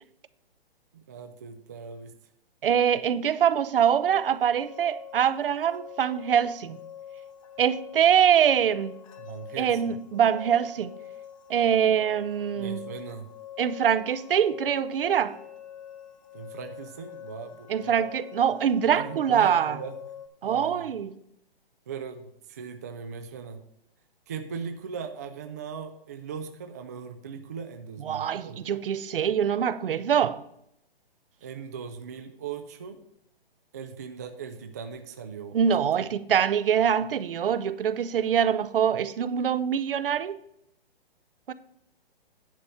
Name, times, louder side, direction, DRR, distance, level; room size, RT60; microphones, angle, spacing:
voice 1, 0.9-2.1 9.2-10.0 12.5-13.3 16.3-18.0 18.9-20.0 20.4-20.9 21.9-23.6 24.3-28.6 31.4-33.0 33.7-35.9, right 6 dB, 20° right, 0.3 m, -39 dB
voice 2, 2.6-6.8 7.6-8.9 9.6-10.9 11.5-12.8 13.6-15.4 17.7-19.8 20.4-21.1 28.0-30.4 35.5-40.4 41.5-41.6, right 8 dB, 65° right, 0.7 m, -24 dB
sound 1, 4.0-20.3, left 9 dB, 35° left, 0.9 m, -45 dB
10.0 x 4.2 x 7.6 m
hypercardioid pair, 150°, 30 cm